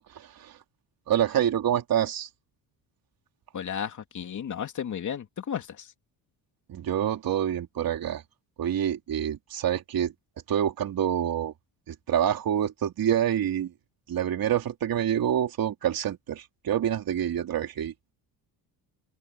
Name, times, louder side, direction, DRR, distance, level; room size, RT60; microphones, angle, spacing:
voice 1, 0.1-0.6 1.1-2.3 6.7-8.2 8.6-10.1 10.5-11.5 11.9-13.7 14.1-17.9, right 10 dB, 55° right, 3.3 m, -27 dB
voice 2, 3.5-5.9, left 8 dB, 45° left, 3.0 m, -33 dB
open air
cardioid pair, 150°, 43 cm